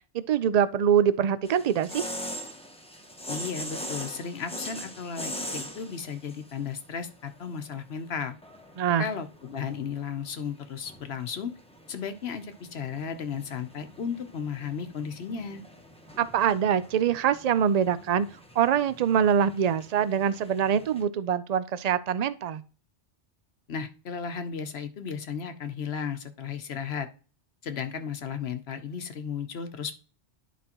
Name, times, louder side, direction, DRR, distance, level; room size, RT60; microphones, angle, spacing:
voice 1, 0.1-2.1 8.8-9.1 16.2-18.3 18.6-22.6, right 8 dB, 65° right, 0.4 m, -24 dB
sound 1, 1.4-21.0, equal, 5° left, 0.8 m, -42 dB
voice 2, 3.3-8.3 9.0-11.5 11.9-15.6 23.7-27.1 27.6-30.0, left 6 dB, 60° left, 1.0 m, -34 dB
11.0 x 5.0 x 2.9 m
omnidirectional pair, 1.2 m